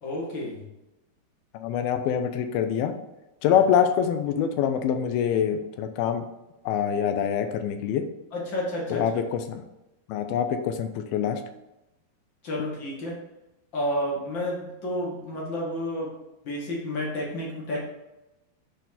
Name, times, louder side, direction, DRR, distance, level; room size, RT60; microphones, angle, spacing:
voice 1, 0.0-0.6 8.3-9.1 12.4-13.2 13.7-16.2 16.4-17.9, left 1 dB, 45° left, -4 dB, 1.5 m, -30 dB
voice 2, 1.5-2.9 3.4-6.3 6.7-8.0 8.9-9.6 10.1-11.4, left 8 dB, 80° left, 8 dB, 2.4 m, -25 dB
8.1 x 4.3 x 4.2 m, 0.96 s
omnidirectional pair, 4.6 m